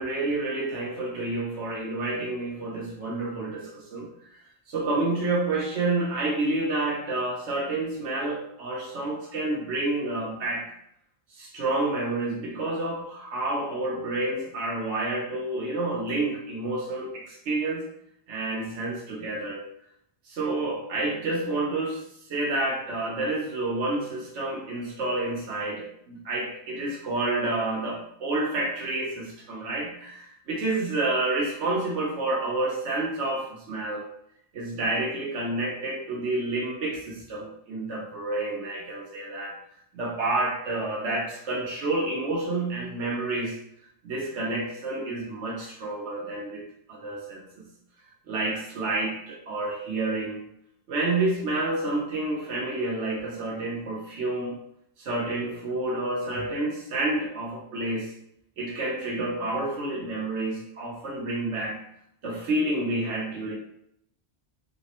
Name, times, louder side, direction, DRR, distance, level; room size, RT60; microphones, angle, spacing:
voice 1, 0.0-4.1 4.7-10.7 11.3-17.8 18.3-19.7 20.3-22.0 22.3-34.1 34.5-39.5 39.9-43.6 44.0-47.7 48.3-50.4 50.9-54.6 55.0-58.1 58.6-61.8 62.2-63.5, right 2 dB, 90° right, -2 dB, 1.1 m, -29 dB
3.3 x 2.1 x 2.8 m, 0.71 s
omnidirectional pair, 1.2 m